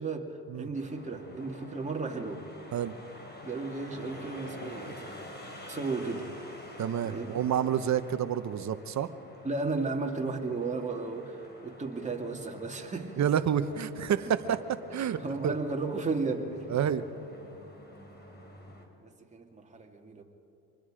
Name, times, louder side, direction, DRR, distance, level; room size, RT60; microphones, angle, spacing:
voice 1, 0.0-2.4 3.4-5.2 5.7-6.3 7.0-7.4 9.4-13.2 15.0-16.6 19.0-20.2, right 3 dB, 20° right, 1 dB, 2.6 m, -34 dB
sound 1, 0.7-18.8, left 1 dB, 25° left, 3.9 m, -48 dB
voice 2, 6.8-9.1 13.2-15.5 16.7-17.1, right 9 dB, 50° right, 11 dB, 1.0 m, -29 dB
26.0 x 20.5 x 5.2 m, 2.8 s
supercardioid pair, 90°, 37 cm